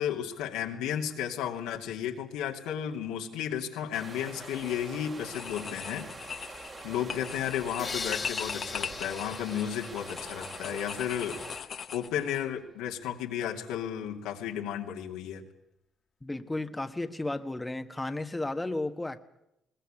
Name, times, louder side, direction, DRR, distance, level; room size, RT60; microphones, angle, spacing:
voice 1, 0.0-6.1 6.8-11.3 11.9-15.4, left 9 dB, 90° left, 2 dB, 2.5 m, -33 dB
sound 1, 3.9-11.6, right 3 dB, 40° right, 3.9 m, -45 dB
sound 2, 4.4-4.8 5.2-12.4, left 7 dB, 55° left, 1.2 m, -40 dB
sound 3, 7.8-10.8, left 5 dB, 35° left, 2.0 m, -40 dB
voice 2, 16.2-19.2, left 2 dB, 15° left, 7 dB, 1.4 m, -33 dB
21.0 x 19.5 x 8.9 m, 0.84 s
supercardioid pair, 75°, 0 cm